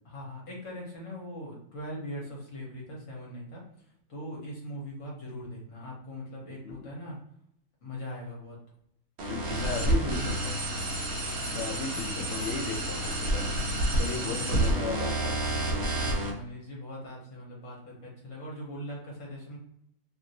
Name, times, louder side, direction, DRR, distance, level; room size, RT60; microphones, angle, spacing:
voice 1, 0.0-3.6 4.1-7.2 7.8-8.6 9.5-10.4 13.7-13.8 14.0-14.6 16.0-19.6, equal, 55° left, -3 dB, 1.4 m, -41 dB
sound 1, 9.2-16.3, right 1 dB, 60° right, 0.7 m, -29 dB
voice 2, 9.3-10.6 11.5-13.6 14.0-15.4, left 5 dB, 85° left, 4 dB, 0.6 m, -36 dB
2.9 x 2.6 x 2.6 m, 0.74 s
omnidirectional pair, 1.7 m